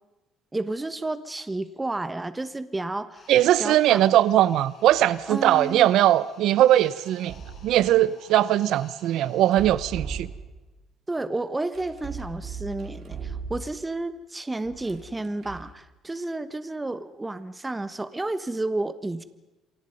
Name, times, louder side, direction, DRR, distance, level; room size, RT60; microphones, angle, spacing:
voice 1, 0.5-3.3 3.6-4.1 5.3-5.9 11.1-19.2, right 2 dB, 10° right, 13 dB, 1.3 m, -31 dB
sound 1, 3.1-9.8, left 4 dB, 45° left, 5.6 m, -54 dB
voice 2, 3.3-7.3 7.6-10.3, right 13 dB, 75° right, 18 dB, 0.7 m, -20 dB
sound 2, 4.8-5.2 7.1-8.0 9.4-10.7 11.7-13.9 14.6-15.8, right 5 dB, 50° right, 3.9 m, -38 dB
28.0 x 24.0 x 5.3 m, 1.1 s
cardioid pair, 135°, 0 cm